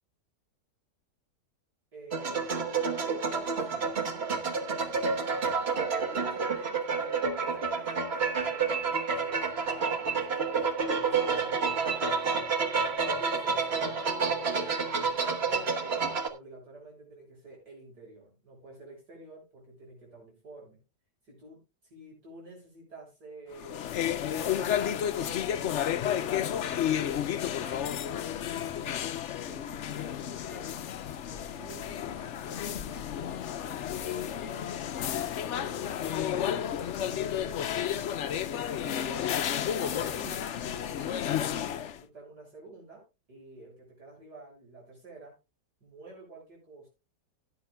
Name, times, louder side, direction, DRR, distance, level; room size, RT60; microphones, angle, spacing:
voice 1, 1.9-2.5 2.9-4.1 4.4-5.2 5.7-10.3 10.9-12.5 13.1-20.8 21.3-21.6 21.9-24.5 24.9-27.0 27.5-30.8 31.3-33.7 34.0-35.9 36.4-38.3 38.7-39.4 39.8-43.0 43.3-45.4 45.8-46.9, right 2 dB, 75° right, -2 dB, 7.6 m, -50 dB
sound 1, 2.1-16.3, right 5 dB, 40° right, 1.4 m, -29 dB
sound 2, 23.5-42.0, left 10 dB, 60° left, 0.8 m, -32 dB
16.5 x 9.4 x 2.2 m, 0.27 s
omnidirectional pair, 1.8 m